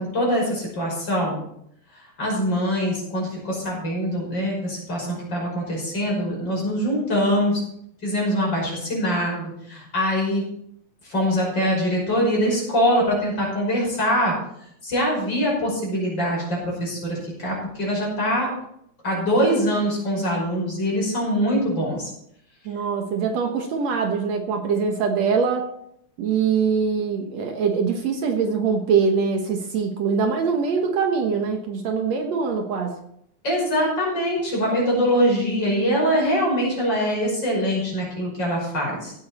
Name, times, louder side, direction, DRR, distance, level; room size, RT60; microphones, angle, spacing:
voice 1, 0.0-1.4 2.2-7.6 8.0-10.4 11.0-14.3 14.8-18.5 19.0-22.1 33.4-39.1, equal, 35° left, -3 dB, 6.2 m, -23 dB
voice 2, 22.7-25.7 26.2-33.0, right 5 dB, 65° right, 4 dB, 2.3 m, -23 dB
16.5 x 9.4 x 4.3 m, 0.73 s
omnidirectional pair, 3.4 m